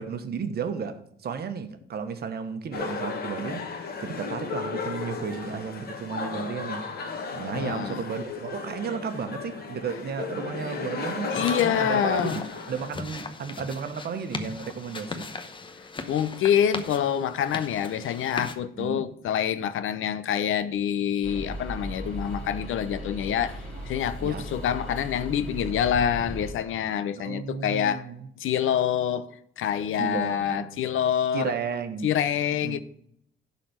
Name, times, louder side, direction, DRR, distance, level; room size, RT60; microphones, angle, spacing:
voice 1, 0.0-6.9 7.3-12.4 12.7-15.3 18.8-19.0 24.2-24.4 27.2-28.3 30.0-30.8 31.3-32.1 32.6-32.8, right 6 dB, 50° right, 1.1 m, -33 dB
sound 1, 2.7-12.9, left 5 dB, 50° left, 1.7 m, -34 dB
voice 2, 7.5-8.0 11.3-12.4 16.1-23.6 23.9-28.1 28.4-29.3 29.6-31.5 32.0-32.8, left 9 dB, 75° left, 0.8 m, -26 dB
sound 2, 11.4-18.6, left 3 dB, 25° left, 0.9 m, -38 dB
sound 3, 21.2-26.5, right 1 dB, 5° left, 3.5 m, -37 dB
11.5 x 4.2 x 7.9 m
cardioid pair, 165°, 21 cm